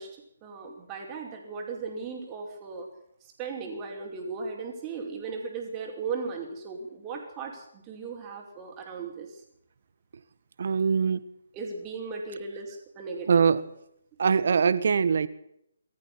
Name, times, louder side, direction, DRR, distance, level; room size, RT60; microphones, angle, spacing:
voice 1, 0.0-2.9 3.2-9.4 11.5-13.4, right 4 dB, 20° right, 1 dB, 5.2 m, -37 dB
voice 2, 10.6-11.2 13.3-13.7 14.2-15.3, right 6 dB, 55° right, 15 dB, 1.5 m, -22 dB
22.5 x 14.0 x 8.5 m, 0.75 s
figure-of-eight pair, 145°, 0 cm